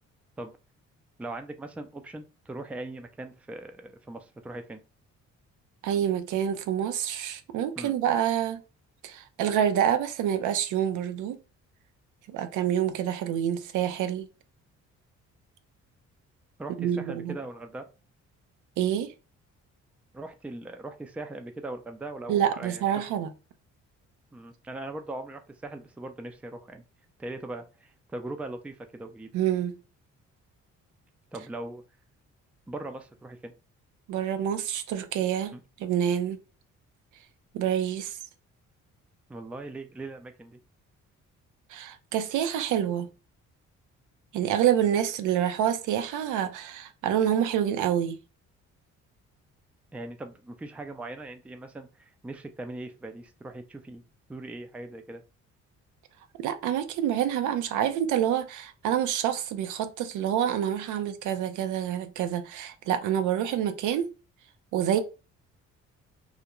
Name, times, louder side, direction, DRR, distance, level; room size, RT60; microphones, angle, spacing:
voice 1, 1.2-4.8 7.8-7.9 16.6-17.9 20.1-23.0 24.3-26.8 27.2-29.3 31.3-31.8 32.7-33.5 35.5-35.6 39.3-40.6 49.9-54.0 54.3-55.2, right 2 dB, 5° right, 0.3 m, -40 dB
voice 2, 5.8-8.6 9.0-11.4 12.3-14.3 16.8-17.3 18.8-19.1 22.3-23.3 29.3-29.7 34.1-35.5 35.8-36.4 37.5-38.2 41.7-43.1 44.3-48.2 56.4-64.1 64.7-65.0, right 10 dB, 80° right, 0.5 m, -27 dB
2.4 x 2.1 x 2.9 m
cardioid pair, 90°, 30 cm